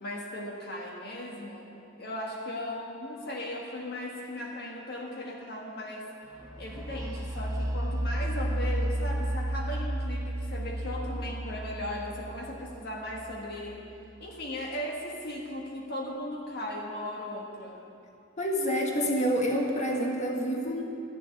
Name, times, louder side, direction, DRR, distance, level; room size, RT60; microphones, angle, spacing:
voice 1, 0.0-1.7 2.0-6.1 6.6-13.8 14.2-17.8, left 1 dB, 55° left, -1 dB, 1.4 m, -37 dB
sound 1, 6.4-14.1, right 1 dB, 20° right, 1.0 m, -33 dB
voice 2, 18.4-20.8, equal, 35° left, 0 dB, 1.5 m, -28 dB
13.0 x 7.1 x 9.7 m, 2.7 s
head